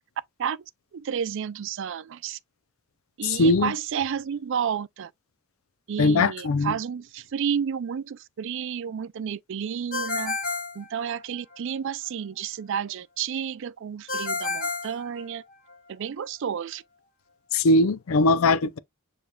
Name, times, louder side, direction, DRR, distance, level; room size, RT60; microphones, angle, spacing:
voice 1, 0.9-2.4 3.2-5.1 5.9-10.4 10.8-15.4 15.9-16.8, right 7 dB, 65° right, 0.4 m, -31 dB
voice 2, 3.2-3.7 6.0-6.8 17.5-18.8, left 2 dB, 80° left, 0.5 m, -20 dB
Ringtone, 9.9-11.6 14.1-15.8, left 3 dB, 45° left, 1.6 m, -31 dB
7.1 x 3.2 x 2.3 m
head